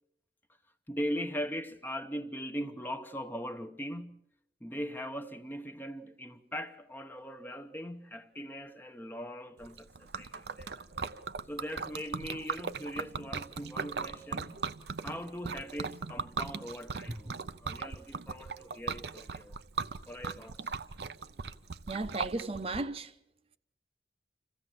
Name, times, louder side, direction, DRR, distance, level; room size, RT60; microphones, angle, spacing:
voice 1, 0.9-4.2 4.6-10.9 11.5-14.6 15.0-19.6 20.1-20.7, equal, 10° left, 0.9 m, -40 dB
Liquid, 9.6-22.8, right 4 dB, 70° right, 0.7 m, -39 dB
voice 2, 21.9-23.1, right 2 dB, 35° right, 0.9 m, -35 dB
27.0 x 16.0 x 7.6 m
head